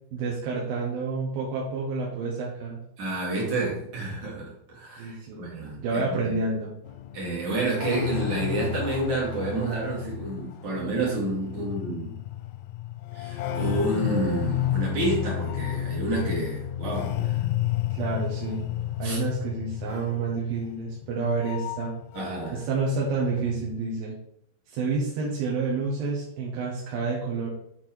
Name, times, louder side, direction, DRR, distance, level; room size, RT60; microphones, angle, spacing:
voice 1, 0.1-2.8 5.0-5.4 5.8-6.7 17.9-18.6 19.0-21.9 22.5-24.1 24.7-27.5, right 4 dB, 70° right, -4 dB, 2.7 m, -29 dB
voice 2, 3.0-6.4 7.1-12.2 13.1-17.4 19.0-19.2 22.1-22.6, right 2 dB, 50° right, -4 dB, 3.4 m, -29 dB
sound 1, 6.9-22.6 22.9-23.8, left 11 dB, 90° left, 2.7 m, -32 dB
8.3 x 4.4 x 4.4 m, 0.70 s
omnidirectional pair, 4.8 m